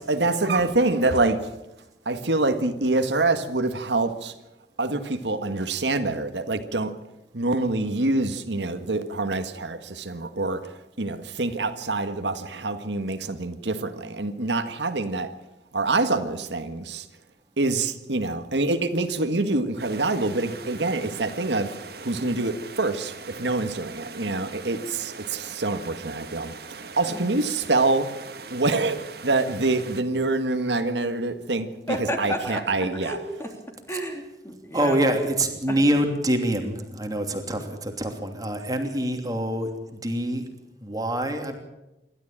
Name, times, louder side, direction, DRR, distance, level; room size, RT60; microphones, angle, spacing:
voice 1, 0.1-1.5 2.0-4.3 4.8-6.9 7.3-10.6 11.0-15.3 15.7-17.1 17.6-21.7 22.0-28.1 28.5-33.2, right 2 dB, 85° right, 8 dB, 1.7 m, -26 dB
sound 1, 19.8-30.0, right 4 dB, 60° right, 1.8 m, -41 dB
voice 2, 31.9-32.6 33.0-33.5 33.9-35.1 35.7-35.8, equal, 15° left, 3 dB, 3.2 m, -31 dB
voice 3, 34.7-40.5 40.8-41.6, right 1 dB, 20° right, 4 dB, 2.9 m, -25 dB
27.0 x 12.5 x 8.9 m, 0.96 s
head